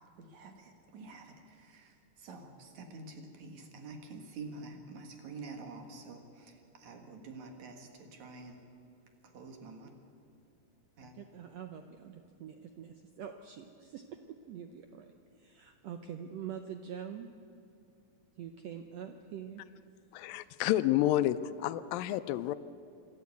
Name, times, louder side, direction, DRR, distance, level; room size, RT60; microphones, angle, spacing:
voice 1, 0.0-8.6 9.2-9.9 11.0-11.1, right 3 dB, 60° right, 4 dB, 2.8 m, -48 dB
voice 2, 11.2-14.0 14.4-15.1 15.4-17.3 18.4-19.6, right 8 dB, 90° right, 6 dB, 1.4 m, -44 dB
voice 3, 20.1-22.6, left 14 dB, 85° left, 14 dB, 2.3 m, -29 dB
26.0 x 12.5 x 8.3 m, 2.7 s
omnidirectional pair, 4.1 m